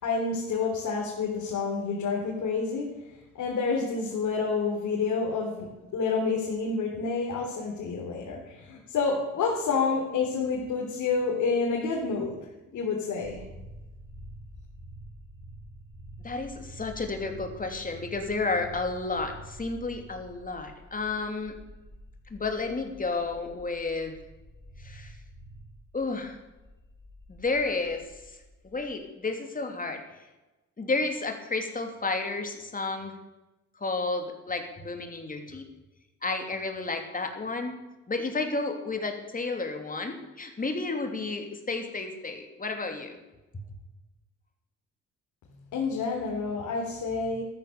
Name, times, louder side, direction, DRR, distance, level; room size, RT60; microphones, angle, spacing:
voice 1, 0.0-2.9 3.4-5.7 5.9-12.4 12.7-13.4 45.7-47.4, left 4 dB, 70° left, -2 dB, 3.8 m, -28 dB
sound 1, 13.2-28.9, equal, 10° left, 6.6 m, -48 dB
voice 2, 16.2-21.6 22.3-24.2 24.8-25.1 25.9-26.4 27.3-28.1 28.6-30.0 30.8-33.1 33.8-35.6 36.2-37.8 38.1-43.2, left 3 dB, 25° left, 5 dB, 3.1 m, -31 dB
13.5 x 13.5 x 6.8 m, 1.1 s
cardioid pair, 90°, 30 cm